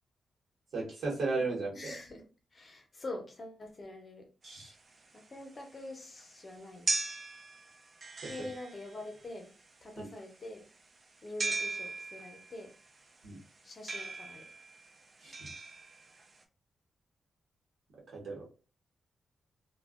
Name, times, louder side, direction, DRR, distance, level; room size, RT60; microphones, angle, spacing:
voice 1, 0.7-1.9 4.4-4.7 10.0-10.1 13.2-13.4 15.2-15.5 18.1-18.4, right 3 dB, 75° right, -2 dB, 1.0 m, -35 dB
voice 2, 1.7-2.2 2.5-4.3 5.1-6.9 8.2-9.5 9.8-10.7 11.2-12.7 13.6-14.5, left 2 dB, 35° left, 2 dB, 0.7 m, -45 dB
sound 1, 4.5-16.4, right 3 dB, 35° right, 0.3 m, -40 dB
2.5 x 2.2 x 2.4 m, 0.35 s
wide cardioid pair, 120°, 0 cm